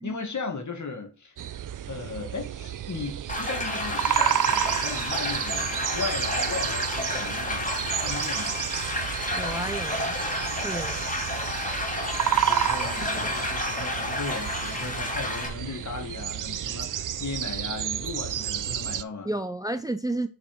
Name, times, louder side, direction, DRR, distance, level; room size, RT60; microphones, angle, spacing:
voice 1, 0.0-1.4 1.9-8.6 12.3-19.3, left 4 dB, 50° left, 2.1 m, -37 dB
sound 1, 1.4-19.0, right 10 dB, 60° right, 0.5 m, -31 dB
sound 2, 3.3-15.5, left 2 dB, 20° left, 2.4 m, -31 dB
voice 2, 9.3-10.2 10.6-11.0 19.2-20.3, right 1 dB, 10° right, 0.6 m, -31 dB
6.0 x 4.2 x 5.4 m
cardioid pair, 50°, 37 cm